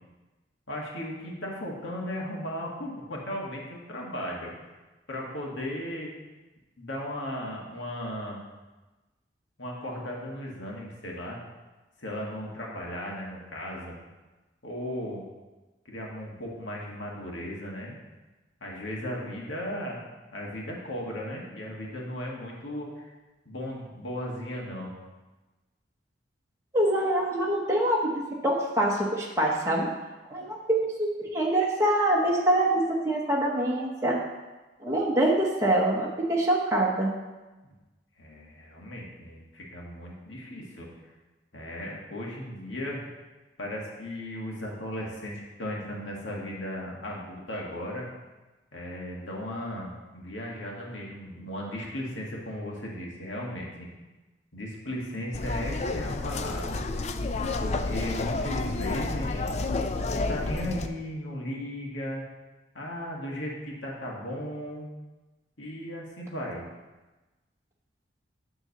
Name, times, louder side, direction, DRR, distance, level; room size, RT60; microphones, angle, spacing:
voice 1, 0.7-4.5 5.1-6.1 6.8-8.4 9.6-11.4 12.0-14.0 14.6-15.3 15.9-18.0 18.6-20.0 20.3-23.1 23.5-24.9 37.6-37.7 38.2-40.9 41.5-43.1 43.6-48.1 48.7-53.9 54.5-56.8 57.6-59.5 60.1-62.2 62.7-64.9 65.6-66.7, left 1 dB, 80° left, -2 dB, 1.8 m, -36 dB
voice 2, 26.7-29.9 30.3-34.2 34.8-37.1, right 1 dB, 15° right, -4 dB, 1.0 m, -25 dB
sound 1, 55.3-60.9, left 3 dB, 35° left, 0.4 m, -30 dB
9.7 x 3.8 x 6.5 m, 1.2 s
head